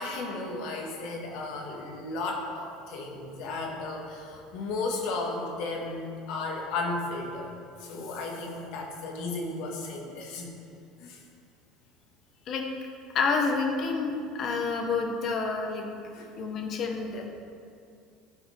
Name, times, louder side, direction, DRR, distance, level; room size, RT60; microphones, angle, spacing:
voice 1, 0.0-7.5 7.8-10.5 11.0-11.2 16.1-16.3, left 3 dB, 70° left, 0 dB, 1.7 m, -34 dB
voice 2, 13.1-15.9 16.4-17.3, left 4 dB, 45° left, 3 dB, 1.2 m, -28 dB
13.5 x 5.3 x 3.5 m, 2.5 s
supercardioid pair, 110°, 0 cm